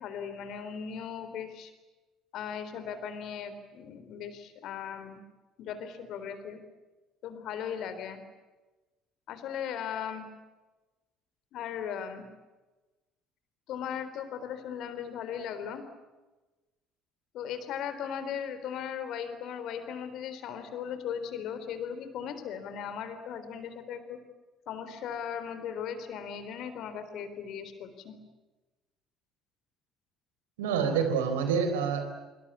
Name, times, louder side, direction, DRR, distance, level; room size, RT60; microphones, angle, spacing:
voice 1, 0.0-1.7 2.3-5.2 5.6-6.6 7.2-8.2 9.3-10.3 11.5-12.3 13.7-15.8 17.3-24.2 24.7-28.2, left 8 dB, 55° left, 10 dB, 3.8 m, -37 dB
voice 2, 30.6-32.1, right 6 dB, 75° right, 8 dB, 4.1 m, -27 dB
26.0 x 24.0 x 8.6 m, 1.1 s
figure-of-eight pair, 55°, 0 cm